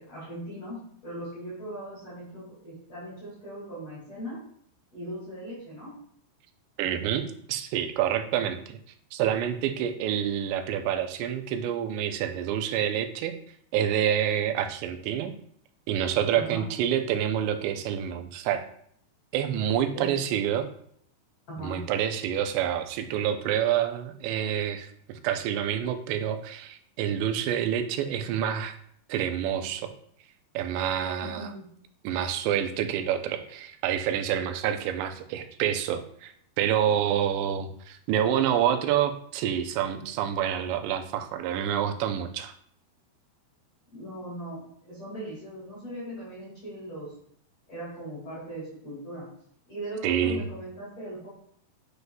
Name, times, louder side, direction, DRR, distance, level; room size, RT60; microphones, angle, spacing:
voice 1, 0.0-4.4 4.9-6.0 16.3-16.6 19.9-20.1 21.5-21.9 31.2-31.7 43.9-47.1 47.7-49.3 49.7-51.3, right 1 dB, 40° left, -8 dB, 3.0 m, -39 dB
voice 2, 6.8-8.8 9.1-13.4 13.7-15.3 15.9-18.6 19.3-20.7 21.6-28.8 29.1-29.9 30.5-31.5 32.0-42.5 50.0-50.5, right 9 dB, 90° right, 7 dB, 2.9 m, -28 dB
8.0 x 6.7 x 2.3 m, 0.65 s
omnidirectional pair, 4.9 m